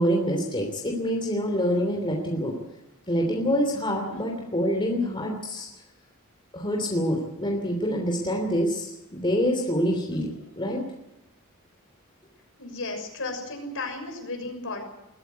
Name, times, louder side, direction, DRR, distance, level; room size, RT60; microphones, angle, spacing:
voice 1, 0.0-2.5 3.1-5.7 6.5-10.3 10.6-10.8, equal, 25° left, 1 dB, 3.2 m, -26 dB
voice 2, 12.6-14.8, left 2 dB, 65° left, 4 dB, 6.5 m, -34 dB
22.0 x 14.5 x 9.4 m, 0.97 s
head